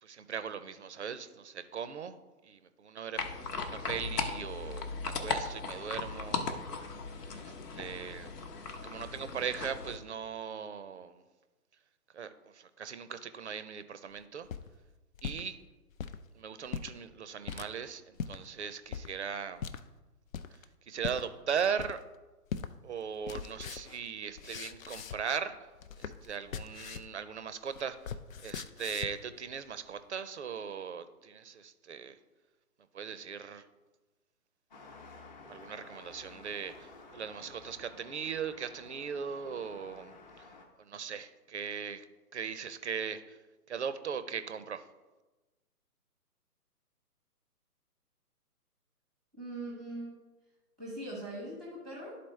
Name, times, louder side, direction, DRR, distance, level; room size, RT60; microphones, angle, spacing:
voice 1, 0.0-2.1 2.4-3.2 3.6-6.4 7.3-8.3 8.8-11.2 12.1-14.5 15.2-15.6 16.3-19.7 20.9-22.0 22.8-25.7 26.0-32.2 32.9-33.6 35.5-40.5 40.8-42.1 42.3-43.4 43.7-44.9, right 7 dB, 50° right, 12 dB, 0.5 m, -39 dB
sound 1, 3.2-10.0, left 4 dB, 80° left, 1.0 m, -37 dB
sound 2, 14.2-15.5 15.9-16.2 16.7-16.9 17.5-17.7 18.2-18.4 18.9-19.1 19.6-19.8 20.3-20.6 21.0-21.2 21.8-22.2 22.5-22.7 23.0-25.4 25.7-27.2 27.4-29.3, left 7 dB, 60° left, 0.5 m, -40 dB
sound 3, 34.7-40.7, left 3 dB, 30° left, 0.9 m, -53 dB
voice 2, 49.4-50.2 50.8-52.2, right 1 dB, ahead, -5 dB, 0.8 m, -41 dB
11.5 x 4.1 x 3.2 m, 1.2 s
hypercardioid pair, 150°, 47 cm